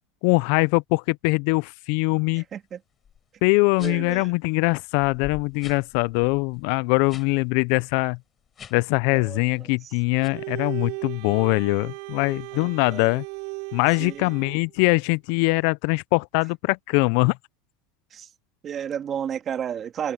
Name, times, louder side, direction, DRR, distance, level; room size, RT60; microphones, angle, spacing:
voice 1, 0.2-2.4 3.4-8.2 8.7-13.2 13.7-17.4, left 28 dB, 65° left, 0.4 m, -22 dB
voice 2, 2.3-2.8 3.8-4.3 9.1-9.4 12.5-13.0 14.0-14.3 18.1-18.3 18.6-20.1, right 8 dB, 30° right, 1.8 m, -32 dB
sound 1, 3.0-3.2 3.7-4.2 4.7-4.8 5.0-7.3 7.6-7.8 8.5-9.0 9.4-9.7 10.2-10.3, left 8 dB, 25° left, 7.7 m, -45 dB
Bowed string instrument, 10.1-14.6, right 33 dB, 65° right, 6.2 m, -37 dB
supercardioid pair, 125°, 0 cm